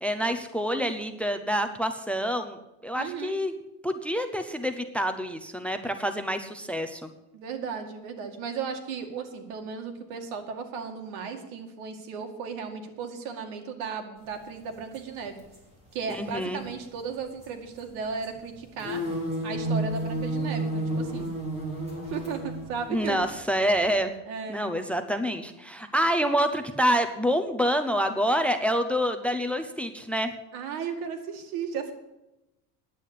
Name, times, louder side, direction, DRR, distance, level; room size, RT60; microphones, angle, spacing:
voice 1, 0.0-3.5 3.8-7.1 16.1-16.6 22.9-24.1 24.5-30.3, equal, 5° left, 8 dB, 0.5 m, -27 dB
voice 2, 2.9-3.4 7.3-15.4 15.9-19.0 19.4-21.3 22.1-23.2 24.3-24.7 30.5-31.9, right 6 dB, 90° right, 5 dB, 2.2 m, -35 dB
sound 1, 14.9-15.0 15.4-15.6 15.9-16.1 17.4-17.9 18.2-18.3 18.5-24.0, right 1 dB, 15° right, 3.6 m, -31 dB
10.0 x 8.4 x 8.4 m, 0.94 s
cardioid pair, 160°, 40 cm